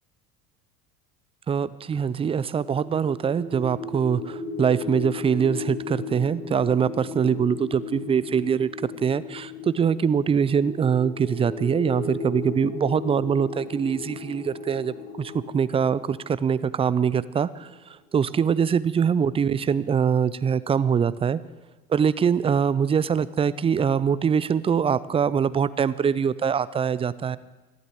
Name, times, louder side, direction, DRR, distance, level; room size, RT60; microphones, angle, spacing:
voice 1, 1.5-8.7 9.0-21.4 21.9-27.4, right 7 dB, 15° right, 17 dB, 0.4 m, -23 dB
sound 1, 2.4-17.4, left 4 dB, 75° left, 6.8 m, -36 dB
13.5 x 12.0 x 8.4 m, 1.2 s
figure-of-eight pair, 70°, 46 cm